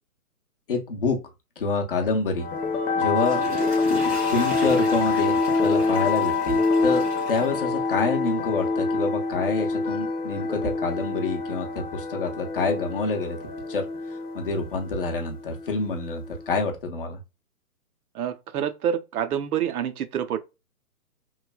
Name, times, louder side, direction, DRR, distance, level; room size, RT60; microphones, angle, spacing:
voice 1, 0.7-1.2 1.6-2.5 3.0-3.4 4.3-13.4 13.7-13.8 14.3-17.2, left 3 dB, 40° left, 0.5 m, -27 dB
sound 1, 2.4-16.5, left 3 dB, 75° left, 0.7 m, -26 dB
Water / Toilet flush, 2.9-8.2 8.7-8.8, equal, 10° right, 0.6 m, -37 dB
voice 2, 18.1-20.4, right 9 dB, 75° right, 0.5 m, -27 dB
3.1 x 2.1 x 2.2 m
hypercardioid pair, 165°, 45 cm